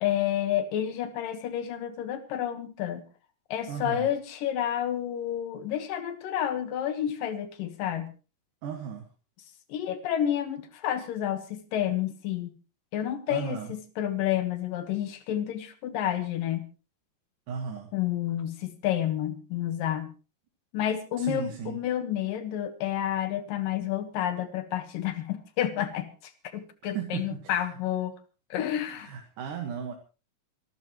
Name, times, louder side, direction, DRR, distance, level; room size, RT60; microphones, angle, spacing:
voice 1, 0.0-3.0 3.5-8.1 9.7-12.5 12.9-16.6 17.9-20.1 20.7-28.2 28.5-29.1, left 11 dB, 75° left, 10 dB, 3.1 m, -30 dB
voice 2, 3.7-4.1 8.6-9.1 13.3-13.7 17.5-17.9 21.2-21.8 26.9-27.8 28.9-29.9, right 7 dB, 70° right, 2 dB, 3.1 m, -35 dB
26.5 x 13.0 x 3.1 m, 0.33 s
omnidirectional pair, 4.0 m